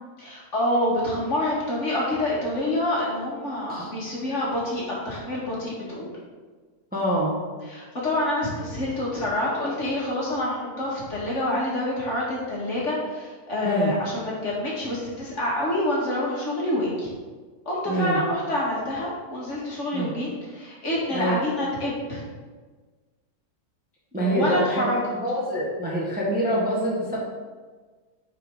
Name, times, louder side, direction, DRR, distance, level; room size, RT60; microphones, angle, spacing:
voice 1, 0.2-6.1 7.7-17.1 17.7-22.2 24.3-25.0, left 1 dB, 45° left, -5 dB, 2.1 m, -27 dB
voice 2, 6.9-7.4 13.6-13.9 17.8-18.2 19.9-20.1 21.1-21.4 24.1-24.9 25.1-27.2, right 1 dB, 5° right, -5 dB, 1.4 m, -25 dB
9.8 x 4.7 x 3.8 m, 1.4 s
omnidirectional pair, 1.8 m